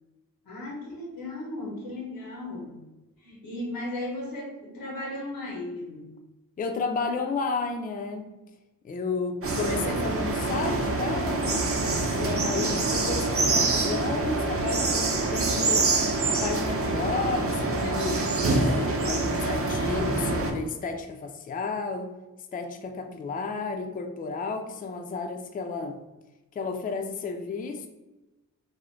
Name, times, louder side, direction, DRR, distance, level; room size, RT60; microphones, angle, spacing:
voice 1, 0.4-2.8 3.2-6.1 12.3-12.8, left 1 dB, 90° left, -2 dB, 1.0 m, -36 dB
voice 2, 6.6-8.3 8.8-11.7 12.1-15.9 16.3-18.2 18.5-22.1 22.5-26.0 26.5-27.9, left 4 dB, 25° left, 6 dB, 0.3 m, -32 dB
sound 1, 9.4-20.5, right 3 dB, 40° right, 0.6 m, -26 dB
2.6 x 2.1 x 3.1 m, 1.0 s
cardioid pair, 50°, 33 cm